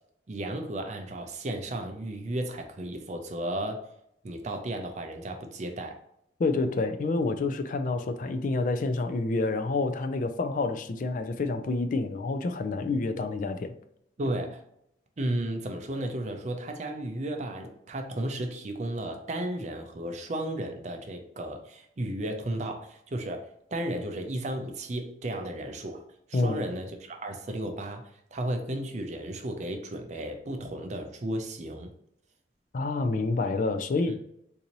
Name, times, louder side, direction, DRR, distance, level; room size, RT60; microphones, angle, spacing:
voice 1, 0.3-3.9 4.2-6.0 14.2-14.6 15.2-31.9 34.0-34.1, right 1 dB, 40° right, 0.5 m, -34 dB
voice 2, 6.4-13.7 26.3-26.6 32.7-34.1, left 3 dB, 45° left, 0.3 m, -28 dB
3.9 x 2.6 x 2.9 m
head